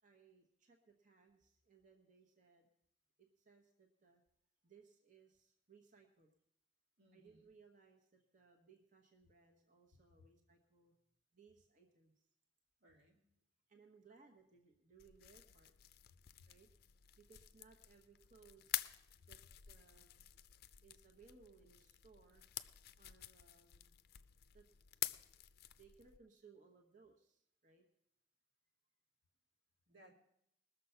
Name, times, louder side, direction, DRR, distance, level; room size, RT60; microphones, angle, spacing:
voice 1, 0.0-2.7 3.2-4.2 4.6-6.3 7.1-10.9 11.3-12.3 13.7-15.7 16.5-16.7 17.2-18.9 19.3-19.4 19.7-20.2 20.8-22.5 23.0-23.9 24.5-25.5 25.8-27.9, right 5 dB, 45° right, 2 dB, 1.1 m, -66 dB
voice 2, 7.0-7.5 9.9-10.3 12.8-13.2 16.1-16.5 19.2-19.3 29.9-30.1, left 1 dB, 85° right, 1 dB, 2.4 m, -66 dB
sound 1, 15.0-26.2, left 13 dB, 55° left, 0.5 m, -49 dB
20.5 x 6.8 x 5.6 m, 0.79 s
head